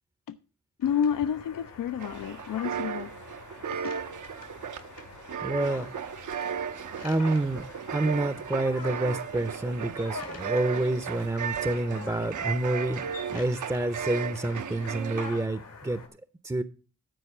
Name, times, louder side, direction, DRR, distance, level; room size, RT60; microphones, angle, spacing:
sound 1, 0.8-16.1, left 4 dB, 90° left, 2.7 m, -45 dB
voice 1, 0.8-3.1 3.8-3.9, left 8 dB, 75° left, 0.5 m, -29 dB
sound 2, 2.0-15.5, right 8 dB, 65° right, 0.6 m, -35 dB
voice 2, 5.4-5.9 7.0-16.0 16.4-16.6, right 2 dB, 10° right, 0.6 m, -28 dB
12.5 x 4.8 x 5.9 m
cardioid pair, 60°, 33 cm